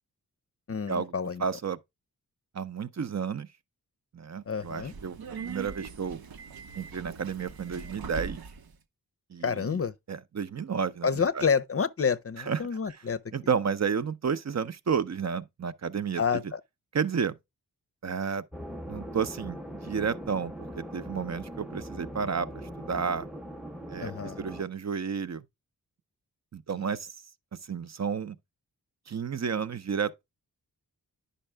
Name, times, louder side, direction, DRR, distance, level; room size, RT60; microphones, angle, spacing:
voice 1, 0.7-1.4 4.5-4.9 9.4-9.9 11.0-13.2 16.2-16.6 24.0-24.4, left 6 dB, 40° left, 0.6 m, -28 dB
voice 2, 1.4-1.8 2.5-3.5 4.1-5.2 5.4-6.2 6.7-8.4 9.3-9.8 10.1-11.4 12.4-12.6 12.9-13.0 13.3-16.2 16.9-17.4 18.0-18.4 18.9-19.6 19.8-23.3 23.9-24.1 24.4-25.4 26.5-27.1 27.5-28.4 29.1-30.2, right 6 dB, 45° right, 0.7 m, -31 dB
Subway metro underground, 4.5-8.7, right 5 dB, 75° right, 0.9 m, -41 dB
sound 1, 18.5-24.6, equal, ahead, 0.7 m, -41 dB
10.0 x 5.5 x 3.4 m
wide cardioid pair, 95°, 37 cm